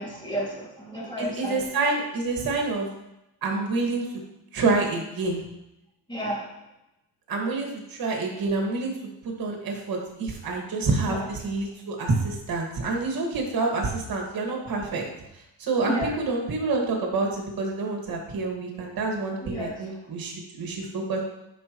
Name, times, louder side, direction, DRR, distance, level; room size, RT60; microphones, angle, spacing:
voice 1, 0.0-1.7 6.1-6.5 11.1-11.2 15.8-16.1 19.4-19.9, equal, 10° left, -5 dB, 2.4 m, -32 dB
voice 2, 1.2-2.9 3.4-4.0 4.5-5.4 7.3-8.9 9.4-15.0 15.6-21.2, right 3 dB, 50° right, 0 dB, 2.0 m, -27 dB
11.5 x 5.4 x 3.1 m, 0.88 s
cardioid pair, 145°, 44 cm